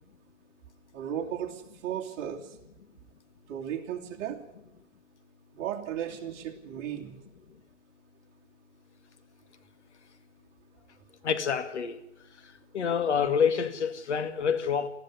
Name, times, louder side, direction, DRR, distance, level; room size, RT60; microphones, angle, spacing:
voice 1, 0.9-2.6 3.5-4.4 5.5-7.2, right 9 dB, 30° right, 3.0 m, -35 dB
voice 2, 11.2-12.0 12.7-14.9, left 7 dB, 65° left, 2.2 m, -27 dB
19.5 x 15.0 x 9.9 m
hypercardioid pair, 130°, 36 cm